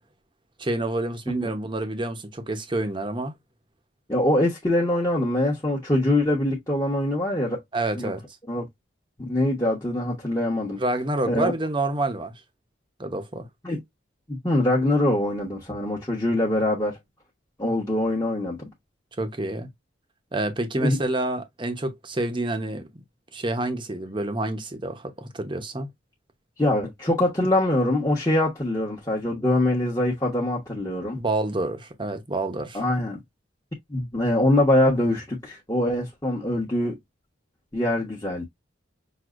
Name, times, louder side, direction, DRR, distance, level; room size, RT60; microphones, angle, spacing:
voice 1, 0.6-3.3 7.7-8.2 10.8-12.3 13.0-13.5 19.2-19.7 20.3-23.0 23.3-25.9 31.2-32.8, right 2 dB, 25° right, 0.8 m, -28 dB
voice 2, 4.1-7.6 8.0-8.1 8.5-8.6 9.2-10.8 11.3-11.5 13.6-13.8 14.3-17.0 17.6-18.6 20.8-21.0 26.6-31.2 32.7-33.2 33.9-37.0 37.7-38.4, left 1 dB, 15° left, 1.1 m, -23 dB
6.1 x 2.7 x 2.5 m
head